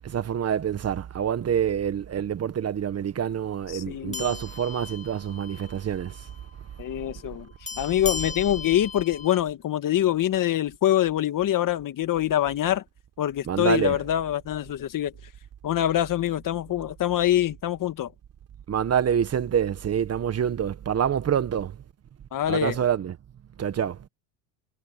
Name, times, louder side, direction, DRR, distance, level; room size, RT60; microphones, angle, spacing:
voice 1, 0.0-6.2 13.5-14.0 18.7-21.8 22.5-23.2 23.6-24.0, right 8 dB, 30° right, 1.3 m, -26 dB
voice 2, 3.7-4.3 6.8-7.5 7.8-12.8 13.2-15.1 15.6-18.1 22.3-22.8, left 12 dB, 40° left, 1.8 m, -25 dB
sound 1, 4.1-5.8 6.1-6.3 7.7-9.4, left 4 dB, 15° left, 6.5 m, -37 dB
supercardioid pair, 110°, 48 cm